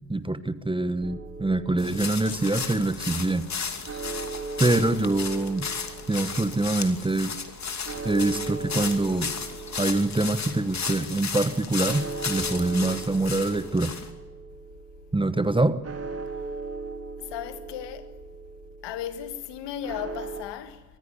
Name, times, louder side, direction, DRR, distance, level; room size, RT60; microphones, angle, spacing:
voice 1, 0.1-3.5 4.6-5.7 6.1-7.4 8.0-9.4 9.8-13.9 15.1-15.8, right 2 dB, 10° right, 1.1 m, -25 dB
sound 1, 1.0-20.4, right 4 dB, 30° right, 2.6 m, -39 dB
sound 2, 1.8-14.1, left 6 dB, 35° left, 2.6 m, -34 dB
sound 3, 2.2-3.7, left 7 dB, 90° left, 1.6 m, -46 dB
voice 2, 17.2-18.1 18.8-20.8, left 10 dB, 60° left, 1.8 m, -35 dB
24.0 x 15.0 x 8.5 m
figure-of-eight pair, 45°, 47 cm